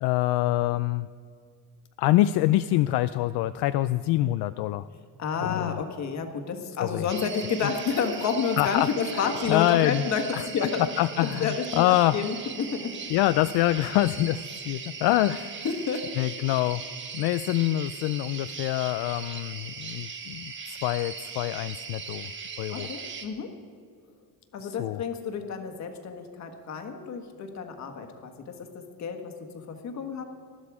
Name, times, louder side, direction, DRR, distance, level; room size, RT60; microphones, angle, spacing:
voice 1, 0.0-1.1 2.0-4.9 5.4-5.8 6.8-7.1 8.6-8.9 9.1-10.0 10.3-10.4 11.0-12.2 13.1-15.6 16.2-16.8 17.1-22.3 22.6-22.9 24.6-25.0, left 15 dB, 70° left, 13 dB, 0.5 m, -25 dB
voice 2, 5.2-10.9 11.2-12.9 15.6-16.1 22.7-23.5 24.5-30.2, left 6 dB, 40° left, 5 dB, 1.6 m, -30 dB
sound 1, 7.1-23.3, right 5 dB, 30° right, 1.3 m, -39 dB
20.0 x 13.0 x 4.9 m, 2.1 s
cardioid pair, 170°, 41 cm